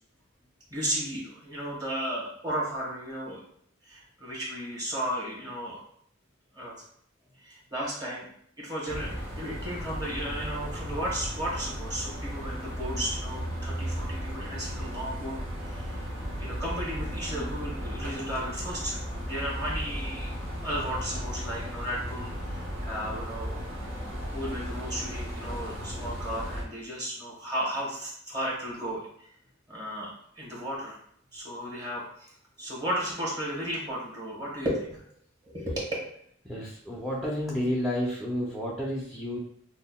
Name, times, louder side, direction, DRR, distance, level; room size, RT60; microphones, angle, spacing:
voice 1, 0.7-3.4 3.8-5.8 6.5-6.7 7.4-8.3 8.6-15.4 15.6-16.0 16.4-20.3 20.6-23.6 24.3-29.3 29.7-31.0 31.3-35.0 35.4-35.9, equal, 20° right, -5 dB, 1.1 m, -34 dB
sound 1, 8.9-26.6, equal, 75° right, 1.0 m, -35 dB
voice 2, 36.4-39.4, equal, ahead, -5 dB, 0.5 m, -31 dB
5.4 x 2.1 x 2.2 m, 0.67 s
head